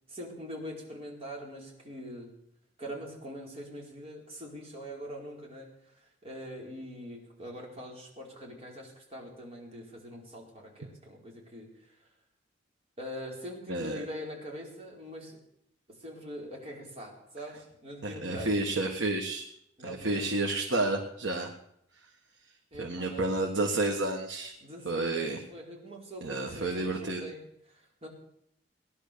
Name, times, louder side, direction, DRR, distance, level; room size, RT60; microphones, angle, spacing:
voice 1, 0.1-2.3 2.8-12.1 13.0-15.4 15.9-18.7 19.8-20.3 22.7-23.3 24.6-28.1, equal, 35° right, -1 dB, 4.5 m, -43 dB
voice 2, 13.7-14.0 18.0-19.5 19.8-21.5 22.8-24.5 24.8-25.4 26.2-27.2, right 2 dB, 75° right, 1 dB, 1.6 m, -30 dB
18.5 x 11.0 x 6.9 m, 0.74 s
head